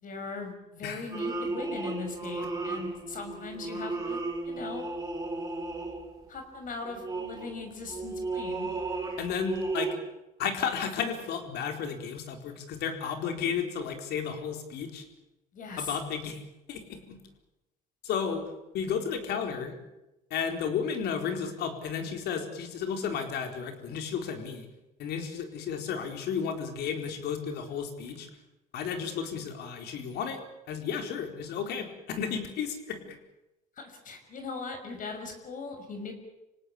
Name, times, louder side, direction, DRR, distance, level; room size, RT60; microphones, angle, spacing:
voice 1, 0.0-4.2 4.4-4.9 6.3-8.7 15.5-16.0 33.8-36.1, left 4 dB, 50° left, 5 dB, 6.1 m, -39 dB
sound 1, 1.1-6.4 6.8-10.0, right 3 dB, 20° right, 4.9 m, -34 dB
voice 2, 9.2-9.9 10.4-15.1 15.8-16.4 16.7-17.2 18.0-18.4 18.7-19.8 20.3-24.7 25.0-28.3 28.7-30.4 30.7-33.2, left 7 dB, 75° left, 5 dB, 4.5 m, -33 dB
26.5 x 18.0 x 8.7 m, 0.96 s
cardioid pair, 110°, 17 cm